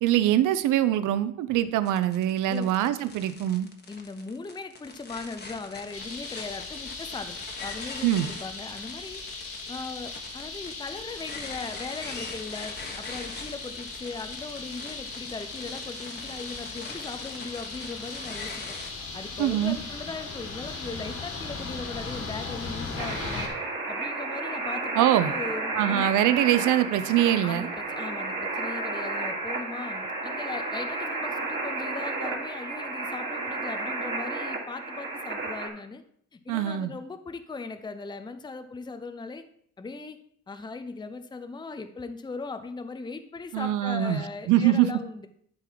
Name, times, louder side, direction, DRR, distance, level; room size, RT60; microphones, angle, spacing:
voice 1, 0.0-3.7 8.0-8.3 19.4-19.8 25.0-25.3 25.8-27.7 36.5-36.9 43.5-44.2 44.5-44.9, right 12 dB, 90° right, 13 dB, 0.6 m, -23 dB
sound 1, 1.9-18.9, left 3 dB, 35° left, 1.4 m, -43 dB
voice 2, 3.9-9.2 9.7-18.8 19.1-23.5 23.9-26.2 27.4-36.0 36.3-39.4 39.8-40.2 40.5-45.3, left 4 dB, 15° left, 9 dB, 0.6 m, -38 dB
sound 2, 5.9-23.5, left 3 dB, 50° left, 2.0 m, -38 dB
sound 3, 23.0-35.7, right 2 dB, 35° right, 2.4 m, -32 dB
11.5 x 3.9 x 4.6 m, 0.65 s
cardioid pair, 90°, 30 cm